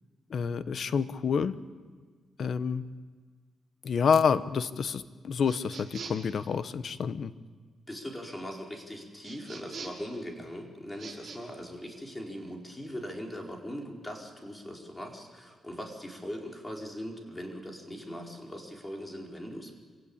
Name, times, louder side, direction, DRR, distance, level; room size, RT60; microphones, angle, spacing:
voice 1, 0.3-1.6 2.4-2.8 3.8-7.3, left 6 dB, 60° left, 14 dB, 1.0 m, -28 dB
sound 1, 5.4-6.3 9.2-10.1 10.9-11.4, right 5 dB, 60° right, 6.5 m, -43 dB
voice 2, 7.9-19.7, equal, 15° left, 1 dB, 4.7 m, -40 dB
25.5 x 17.0 x 8.8 m, 1.5 s
cardioid pair, 85°, 0 cm